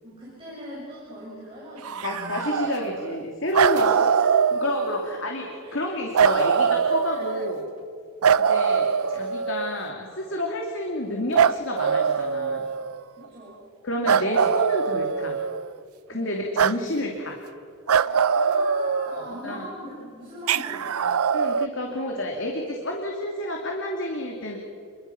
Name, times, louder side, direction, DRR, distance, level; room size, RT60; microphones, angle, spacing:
voice 1, 0.0-2.7 3.5-4.4 5.6-5.7 7.1-7.2 13.1-13.6 16.1-16.4 18.0-21.2 21.8-22.3, equal, 25° right, -7 dB, 6.9 m, -41 dB
sound 1, 1.8-3.2 3.5-5.2 6.1-7.6 8.2-9.8 11.3-13.0 14.0-15.7 16.6-16.8 17.9-19.5 20.5-21.7, right 6 dB, 90° right, 0.5 m, -23 dB
voice 2, 2.0-3.9 4.5-7.6 8.5-12.7 13.8-15.4 16.1-17.4 19.1-19.7 21.3-24.6, left 1 dB, 60° left, 1 dB, 2.7 m, -30 dB
28.5 x 22.5 x 5.8 m, 2.3 s
head